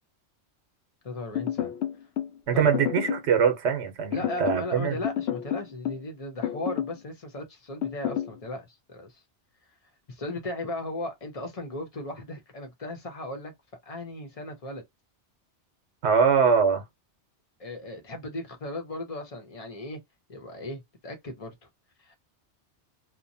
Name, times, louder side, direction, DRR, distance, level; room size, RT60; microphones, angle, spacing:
voice 1, 1.0-1.7 2.5-2.8 4.1-9.2 10.1-13.5 13.9-14.8 17.6-20.0 20.3-21.7 22.0-22.1, left 1 dB, 35° left, 0.8 m, -37 dB
sound 1, 1.4-2.3 2.7-3.3 4.1-4.7 5.0-6.1 6.4-7.0 7.8-8.3, left 11 dB, 70° left, 0.8 m, -30 dB
voice 2, 2.5-5.0 16.0-16.8, right 6 dB, 75° right, 1.0 m, -23 dB
2.9 x 2.1 x 2.6 m
omnidirectional pair, 1.2 m